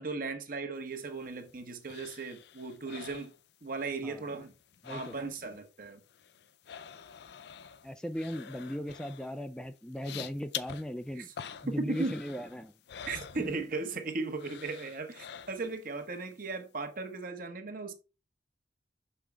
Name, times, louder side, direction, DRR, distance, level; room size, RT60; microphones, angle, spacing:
voice 1, 0.0-3.3 3.6-4.5 4.9-6.0 11.2-11.3 11.7-12.2 13.1-17.9, right 3 dB, 50° right, 1.2 m, -37 dB
sound 1, 0.9-4.0 4.2-5.6 5.8-14.0 14.4-15.9 16.3-16.4, left 8 dB, 65° left, 0.5 m, -47 dB
voice 2, 4.8-5.1 7.8-11.3 11.6-12.7 13.4-13.5, equal, 5° left, 0.3 m, -38 dB
6.1 x 5.5 x 3.4 m
head